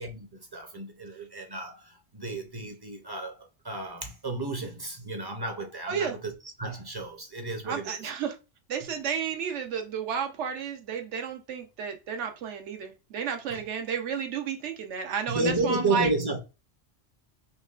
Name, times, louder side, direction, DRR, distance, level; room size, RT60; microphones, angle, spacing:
voice 1, 0.3-6.3 6.6-8.0 13.5-13.6 15.3-16.4, right 2 dB, 30° right, 0.4 m, -32 dB
voice 2, 7.6-8.4 8.7-16.1, right 7 dB, 85° right, 1.0 m, -32 dB
5.5 x 2.1 x 2.4 m
omnidirectional pair, 1.2 m